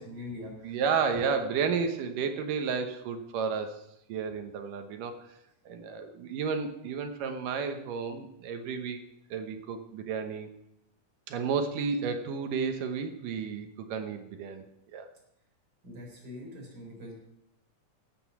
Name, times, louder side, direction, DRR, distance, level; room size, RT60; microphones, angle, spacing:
voice 1, 0.0-0.8 15.8-17.1, left 1 dB, 25° right, -1 dB, 4.6 m, -43 dB
voice 2, 0.6-3.8 4.1-5.2 5.7-9.0 9.3-10.5 11.3-14.6 14.9-15.1, right 6 dB, 70° right, 6 dB, 2.5 m, -32 dB
13.5 x 8.5 x 7.0 m, 0.82 s
omnidirectional pair, 4.2 m